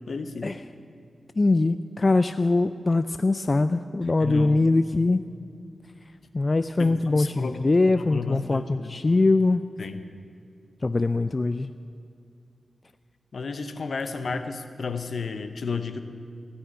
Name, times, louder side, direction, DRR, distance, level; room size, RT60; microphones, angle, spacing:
voice 1, 0.1-0.5 4.2-4.6 6.8-7.6 7.9-9.0 9.8-10.0 13.3-16.0, left 5 dB, 70° left, 9 dB, 0.8 m, -32 dB
voice 2, 1.4-5.2 6.3-9.6 10.8-11.7 14.3-14.4, left 3 dB, 40° left, 11 dB, 0.4 m, -22 dB
17.0 x 6.3 x 9.4 m, 2.4 s
cardioid pair, 50°, 0 cm